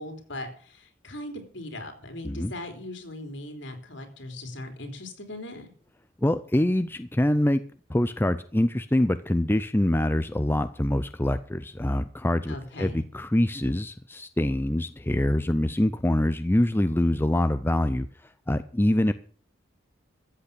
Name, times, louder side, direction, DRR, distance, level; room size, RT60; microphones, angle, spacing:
voice 1, 0.0-5.7 12.5-13.0, left 1 dB, 65° left, 5 dB, 3.5 m, -39 dB
voice 2, 6.2-7.6 7.9-18.1 18.5-19.1, left 1 dB, 10° left, 11 dB, 0.5 m, -24 dB
14.0 x 8.3 x 6.9 m, 0.43 s
head